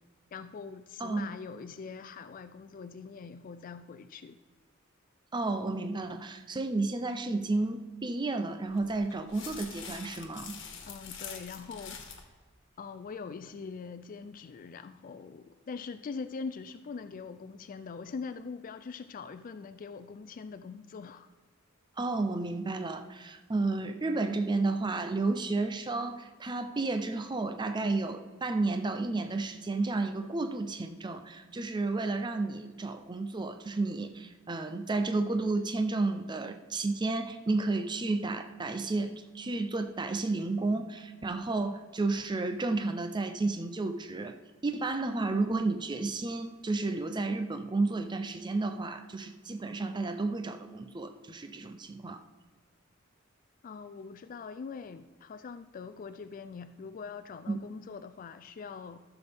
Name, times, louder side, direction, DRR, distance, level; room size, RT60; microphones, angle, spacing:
voice 1, 0.3-4.4 10.8-12.3 12.8-21.3 53.6-59.0, left 5 dB, 40° left, 11 dB, 0.3 m, -43 dB
voice 2, 5.3-10.6 22.0-44.4 44.6-52.2 57.5-57.6, right 3 dB, 20° right, 8 dB, 0.5 m, -32 dB
sound 1, 8.7-12.3, left 6 dB, 65° left, 1.5 m, -45 dB
14.0 x 7.0 x 3.5 m, 1.4 s
head